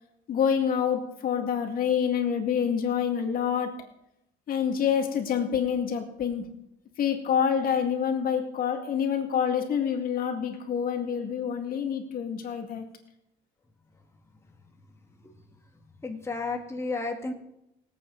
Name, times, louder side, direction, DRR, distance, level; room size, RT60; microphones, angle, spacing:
voice 1, 0.3-3.8 4.5-6.5 7.0-12.8, left 7 dB, 60° left, 4 dB, 2.1 m, -27 dB
voice 2, 16.0-17.3, left 3 dB, 15° left, 2 dB, 1.8 m, -32 dB
24.0 x 8.5 x 4.0 m, 0.84 s
cardioid pair, 110°, 17 cm